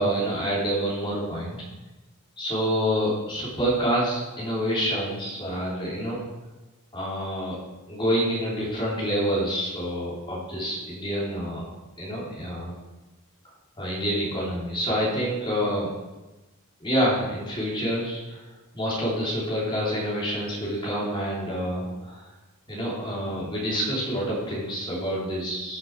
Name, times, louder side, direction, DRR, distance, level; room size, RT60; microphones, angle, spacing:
voice 1, 0.0-1.6 2.4-6.2 6.9-7.6 7.9-11.6 12.0-12.7 13.8-15.9 16.8-18.4 18.7-22.2 22.7-25.8, equal, 20° left, -5 dB, 3.4 m, -27 dB
14.0 x 7.2 x 4.7 m, 1.1 s
head